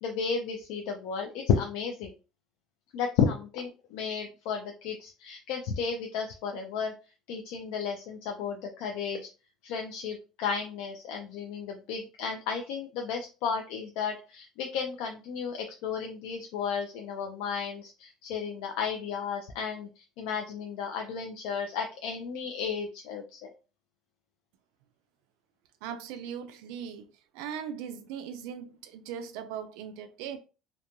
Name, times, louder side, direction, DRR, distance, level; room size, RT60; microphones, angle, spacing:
voice 1, 0.0-2.1 2.9-6.9 7.3-9.3 9.6-23.5, left 6 dB, 75° left, 0.4 m, -33 dB
voice 2, 25.8-27.1 27.3-30.4, right 8 dB, 85° right, 0.3 m, -39 dB
2.9 x 2.2 x 2.5 m
cardioid pair, 175°, 0 cm